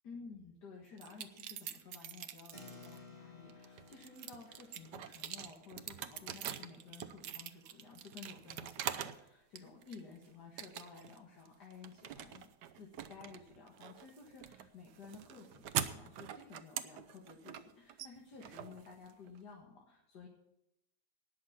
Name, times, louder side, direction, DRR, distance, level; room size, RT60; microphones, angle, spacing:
voice 1, 0.0-12.5 12.7-20.3, left 5 dB, 70° left, -1 dB, 2.4 m, -54 dB
sound 1, 1.0-3.0 3.5-9.2 9.6-10.2 10.6-11.2 11.5-19.4, right 10 dB, 80° right, 1.3 m, -44 dB
Keyboard (musical), 2.5-8.5, left 4 dB, 20° left, 1.7 m, -59 dB
19.0 x 6.6 x 5.8 m, 0.83 s
omnidirectional pair, 1.9 m